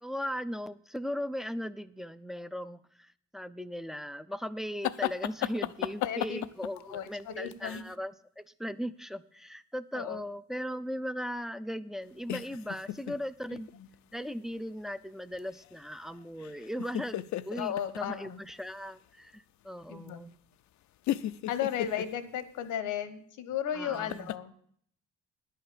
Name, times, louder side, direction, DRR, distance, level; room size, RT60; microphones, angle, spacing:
voice 1, 0.0-13.7 14.1-20.4 23.7-24.3, equal, ahead, 12 dB, 0.4 m, -38 dB
sound 1, 4.8-7.9 12.3-13.2 13.6-13.9 15.3-15.9 16.2-18.0 18.5-18.6 20.1-20.2 21.0-22.1 24.1-24.4, left 13 dB, 70° left, 0.5 m, -35 dB
voice 2, 6.0-6.4 6.8-7.8 9.9-10.2 13.5-13.9 17.6-18.4 19.9-20.2 21.5-24.5, left 9 dB, 85° left, 13 dB, 1.1 m, -35 dB
10.5 x 5.6 x 8.5 m, 0.63 s
cardioid pair, 90°, 30 cm